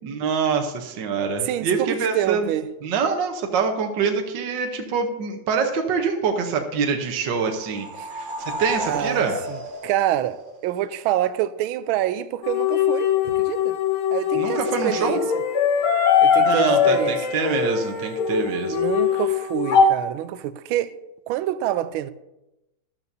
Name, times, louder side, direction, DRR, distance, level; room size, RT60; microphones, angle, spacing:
voice 1, 0.0-2.5 2.8-9.4 14.3-15.2 16.4-18.9, right 5 dB, 65° right, 1.6 m, -25 dB
voice 2, 1.4-2.7 8.0-8.1 8.8-13.8 14.1-15.2 16.2-17.2 18.6-21.0 21.3-22.1, right 12 dB, 80° right, 1.4 m, -27 dB
sound 1, 7.4-11.0, right 1 dB, 40° right, 0.8 m, -33 dB
sound 2, 12.4-19.9, left 7 dB, 90° left, 1.9 m, -21 dB
13.0 x 12.5 x 2.7 m
omnidirectional pair, 2.3 m